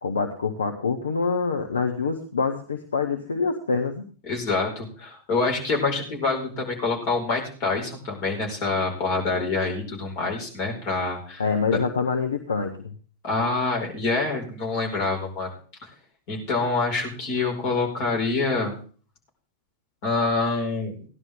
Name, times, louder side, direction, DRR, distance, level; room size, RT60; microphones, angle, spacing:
voice 1, 0.0-4.0 11.4-12.9, left 5 dB, 70° left, 6 dB, 1.1 m, -26 dB
voice 2, 4.3-11.4 11.7-11.8 13.2-15.5 16.3-18.7 20.0-21.0, left 3 dB, 45° left, 1 dB, 5.3 m, -26 dB
17.0 x 11.0 x 3.8 m, 0.41 s
figure-of-eight pair, 90°, 0 cm